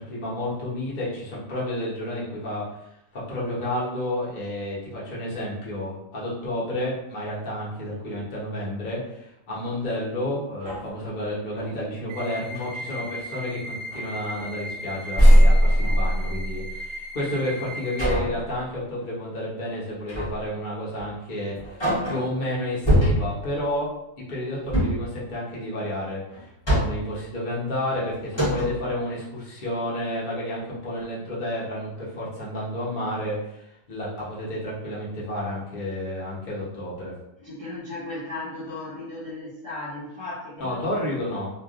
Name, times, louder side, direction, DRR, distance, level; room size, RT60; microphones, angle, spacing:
voice 1, 0.0-2.7 3.1-23.9 24.3-37.1 40.6-41.5, left 1 dB, 40° left, -7 dB, 0.9 m, -31 dB
sound 1, 9.9-10.1 10.5-11.8 12.3-12.7 13.2-13.5 13.9-14.8 15.1-16.7 18.0-18.5 20.1-20.5 21.0-21.1 21.6-22.4 22.9-23.5 24.6-25.1 26.3-27.2 27.9-28.0 28.3-28.9, equal, 20° left, 1.2 m, -21 dB
sound 2, 12.1-18.1, equal, 65° right, 0.8 m, -37 dB
voice 2, 37.4-40.8 41.3-41.4, left 2 dB, 25° right, -9 dB, 0.7 m, -36 dB
3.2 x 2.3 x 2.4 m, 0.82 s
omnidirectional pair, 1.4 m